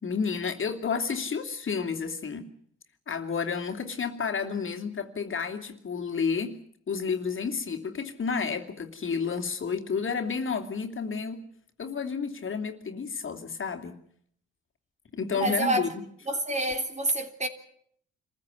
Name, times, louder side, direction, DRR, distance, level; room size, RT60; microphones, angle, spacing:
voice 1, 0.0-2.5 3.1-6.5 6.9-11.4 11.8-14.0 15.1-16.0, left 5 dB, 40° left, 2.8 m, -31 dB
voice 2, 15.4-15.9 16.3-17.5, right 2 dB, 25° right, 3.3 m, -27 dB
26.0 x 15.0 x 9.8 m
cardioid pair, 90°, 30 cm